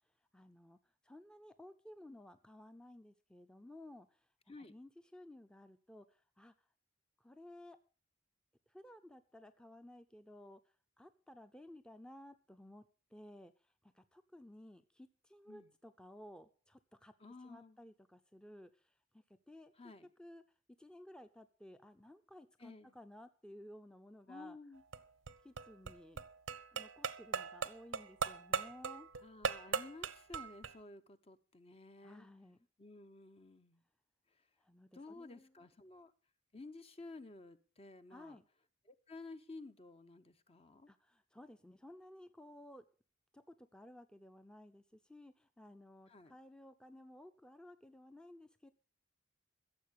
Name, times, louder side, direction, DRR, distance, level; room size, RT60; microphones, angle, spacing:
voice 1, 0.3-0.8 1.0-4.2 4.7-6.5 7.2-7.8 8.7-10.6 11.0-13.5 13.8-17.1 17.4-19.7 20.2-20.4 20.8-24.6 25.4-26.2 26.7-29.1 32.0-32.6 34.6-35.5 38.1-38.4 40.9-42.8 43.3-48.7, left 1 dB, 5° left, 9 dB, 0.6 m, -56 dB
voice 2, 17.2-17.8 19.8-20.1 22.6-22.9 24.3-24.8 29.2-32.3 32.8-33.8 34.9-36.1 36.5-38.4 38.9-40.9 46.1-46.3, left 3 dB, 30° left, 10 dB, 0.8 m, -53 dB
sound 1, 24.8-30.8, right 5 dB, 90° right, 0.9 m, -40 dB
15.0 x 7.4 x 6.8 m, 0.40 s
head